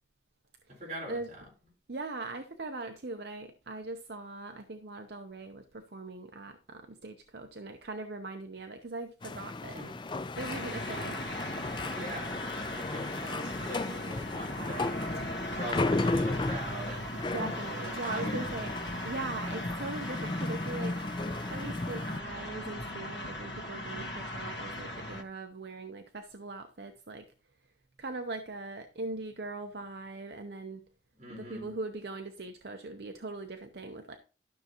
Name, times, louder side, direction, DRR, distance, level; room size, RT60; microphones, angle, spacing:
voice 1, 0.8-1.4 9.8-10.0 11.9-12.4 12.7-17.1 18.0-18.5 31.2-31.7, right 1 dB, 40° right, -2 dB, 4.5 m, -42 dB
voice 2, 1.9-9.8 10.4-11.2 17.3-18.7 19.0-21.0 21.5-27.3 27.6-27.7 28.0-30.8 31.3-34.2, right 3 dB, 65° right, 6 dB, 0.7 m, -40 dB
sound 1, 9.2-22.2, left 2 dB, 25° left, 0.4 m, -35 dB
sound 2, 10.3-25.2, left 1 dB, 75° left, 1.5 m, -39 dB
12.5 x 6.5 x 3.0 m, 0.35 s
head